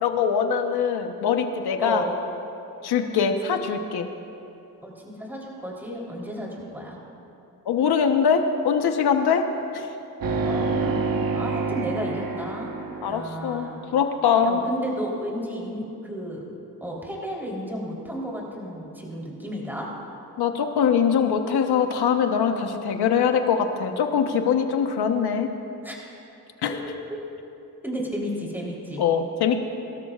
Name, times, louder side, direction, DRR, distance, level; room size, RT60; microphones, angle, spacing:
voice 1, 0.0-2.0 2.8-4.1 7.7-9.4 9.7-9.9 13.0-14.6 20.4-25.5 26.6-26.7 29.0-29.6, left 7 dB, 80° left, 6 dB, 1.1 m, -22 dB
voice 2, 1.8-2.1 4.8-7.0 10.4-12.7 13.0-13.8 14.4-16.4 16.8-19.9 25.8-26.0 26.9-27.0 27.8-29.0, equal, 5° right, -3 dB, 3.6 m, -33 dB
sound 1, 10.2-13.7, right 4 dB, 60° right, 1.2 m, -27 dB
23.0 x 13.0 x 2.5 m, 2.8 s
cardioid pair, 70°, 38 cm